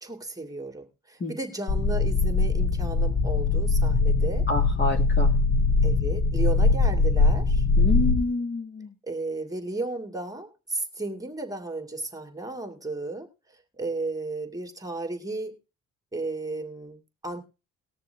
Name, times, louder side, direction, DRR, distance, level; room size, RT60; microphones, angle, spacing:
voice 1, 0.0-4.5 5.8-7.6 9.1-13.3 13.8-15.6 16.1-17.4, right 2 dB, 10° right, 4 dB, 2.3 m, -34 dB
sound 1, 1.7-8.2, left 3 dB, 55° left, 1.2 m, -22 dB
voice 2, 4.5-5.3 7.8-8.9, left 2 dB, 35° left, 4 dB, 2.0 m, -28 dB
20.0 x 6.7 x 3.4 m, 0.31 s
cardioid pair, 90°, 30 cm